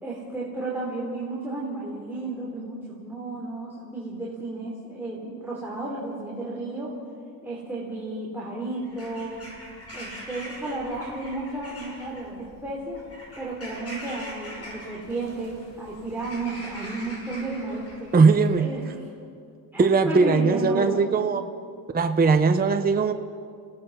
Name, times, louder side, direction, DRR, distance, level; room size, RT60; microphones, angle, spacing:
voice 1, 0.0-6.9 7.4-9.4 9.9-13.0 13.4-18.1 18.6-18.9 19.7-21.1, right 2 dB, 5° right, -6 dB, 3.5 m, -33 dB
Bird vocalization bird call bird song / Crow, 8.8-18.7, equal, 35° left, 6.5 m, -43 dB
voice 2, 18.1-18.7 19.8-21.4 21.9-23.1, right 4 dB, 20° right, 7 dB, 0.8 m, -19 dB
30.0 x 17.5 x 5.6 m, 2.3 s
cardioid pair, 135°, 42 cm